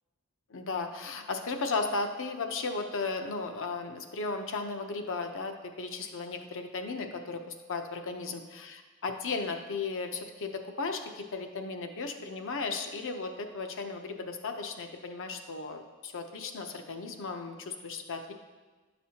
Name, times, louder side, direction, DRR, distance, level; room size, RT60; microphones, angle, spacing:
voice 1, 0.5-18.3, left 4 dB, 60° left, 5 dB, 0.7 m, -35 dB
11.0 x 6.0 x 2.8 m, 1.3 s
head